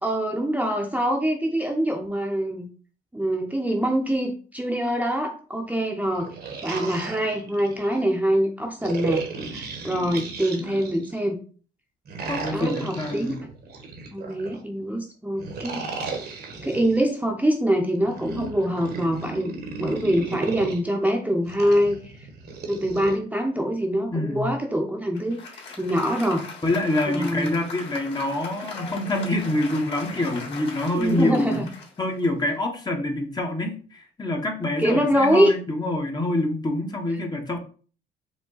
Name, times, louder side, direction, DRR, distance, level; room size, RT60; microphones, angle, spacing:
voice 1, 0.0-2.7 3.1-6.3 6.6-9.2 9.5-11.4 12.5-13.3 14.1-15.8 16.6-19.5 19.8-22.1 22.7-26.4 27.1-27.5 30.9-31.7 34.8-35.5, equal, 5° right, 1 dB, 0.8 m, -24 dB
sound 1, 6.1-8.0 8.8-11.2 12.0-14.6 15.4-17.0 18.0-20.8 21.5-23.1, right 4 dB, 55° right, 1.1 m, -34 dB
voice 2, 12.3-13.4 24.1-24.5 26.6-31.6 32.0-37.6, left 1 dB, 20° left, 3 dB, 0.9 m, -26 dB
Applause, 25.1-32.8, left 4 dB, 60° left, 2.2 m, -39 dB
5.1 x 2.2 x 3.8 m, 0.40 s
cardioid pair, 90°, 20 cm